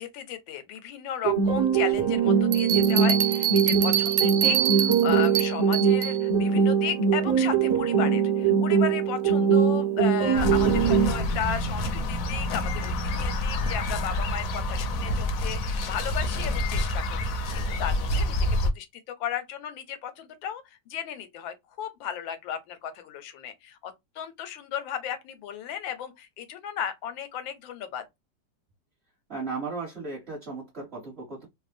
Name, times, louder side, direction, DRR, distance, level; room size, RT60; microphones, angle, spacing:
voice 1, 0.0-18.3 18.8-18.9 19.2-20.6 20.9-28.0, left 8 dB, 90° left, 1.4 m, -35 dB
sound 1, 1.2-11.2, right 6 dB, 20° right, 0.6 m, -22 dB
sound 2, 2.5-6.2, right 11 dB, 85° right, 1.3 m, -26 dB
sound 3, 10.4-18.7, left 1 dB, 70° left, 0.8 m, -28 dB
voice 2, 29.3-31.4, right 4 dB, 40° right, 1.2 m, -35 dB
3.2 x 2.0 x 2.4 m
omnidirectional pair, 2.1 m